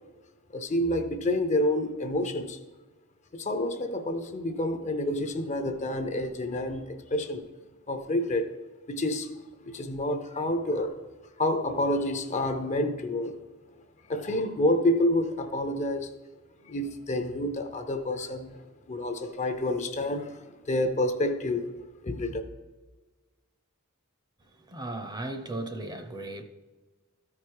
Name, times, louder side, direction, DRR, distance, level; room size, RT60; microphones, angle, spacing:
voice 1, 0.5-2.6 3.3-7.4 7.9-8.5 8.9-9.3 9.6-11.0 11.4-13.4 14.1-16.1 16.6-21.7 22.0-22.4, left 1 dB, 35° left, 0.6 m, -28 dB
voice 2, 24.7-26.4, right 2 dB, 20° right, 0.6 m, -36 dB
13.5 x 4.8 x 4.6 m
head